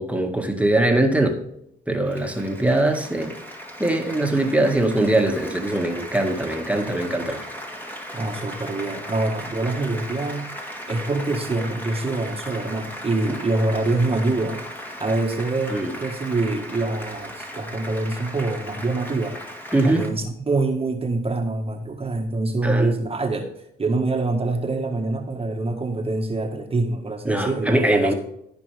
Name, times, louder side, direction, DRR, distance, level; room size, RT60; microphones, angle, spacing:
voice 1, 0.0-1.4 1.9-3.3 3.8-7.4 15.7-15.9 19.7-20.0 22.6-22.9 27.3-28.1, right 1 dB, 5° right, 2 dB, 1.8 m, -21 dB
Applause, 2.0-20.1, equal, 10° left, 2.0 m, -37 dB
voice 2, 8.1-10.5 10.9-14.6 15.0-19.4 19.8-23.5 23.8-28.1, right 2 dB, 30° right, 3 dB, 1.6 m, -25 dB
15.0 x 5.3 x 3.4 m, 0.76 s
cardioid pair, 90°, 20 cm